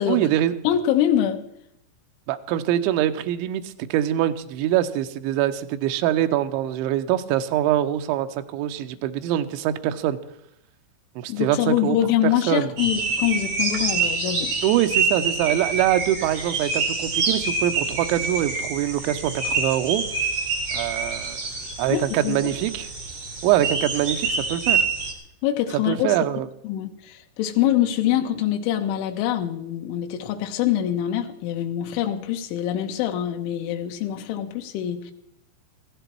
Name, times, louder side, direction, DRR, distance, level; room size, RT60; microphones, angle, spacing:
voice 1, 0.1-0.5 2.3-10.2 11.2-12.0 12.5-12.7 14.6-20.0 20.7-21.4 21.8-22.9 23.4-24.8 25.8-26.5, right 12 dB, 80° right, 8 dB, 3.0 m, -24 dB
voice 2, 0.6-1.4 11.3-14.5 21.9-22.5 25.4-26.1 26.6-35.1, left 11 dB, 80° left, 4 dB, 3.3 m, -24 dB
sound 1, 12.8-25.1, right 4 dB, 50° right, 1.3 m, -26 dB
15.5 x 15.0 x 4.6 m, 0.78 s
omnidirectional pair, 5.6 m